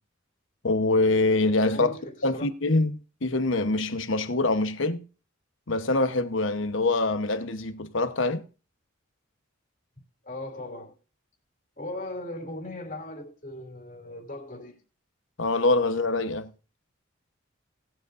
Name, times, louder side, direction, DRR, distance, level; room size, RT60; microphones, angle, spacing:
voice 1, 0.6-1.9 2.2-5.0 5.7-8.4 15.4-16.5, left 2 dB, 65° left, 1.0 m, -24 dB
voice 2, 1.7-2.5 10.2-10.9 11.8-14.8, left 1 dB, 40° left, 2.8 m, -38 dB
19.0 x 8.0 x 2.6 m
head